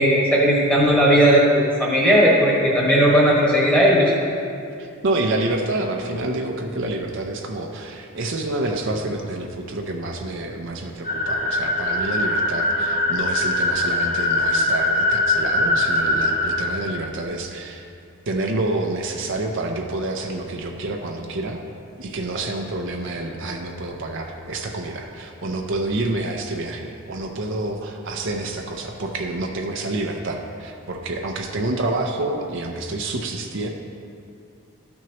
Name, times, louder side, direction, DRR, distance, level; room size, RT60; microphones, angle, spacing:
voice 1, 0.0-4.1, equal, 5° left, -5 dB, 1.4 m, -16 dB
voice 2, 4.8-17.9 18.3-21.6 22.0-33.7, right 2 dB, 55° right, 2 dB, 0.6 m, -28 dB
sound 1, 11.0-16.6, left 1 dB, 35° left, 1.3 m, -22 dB
13.0 x 6.1 x 2.9 m, 2.5 s
head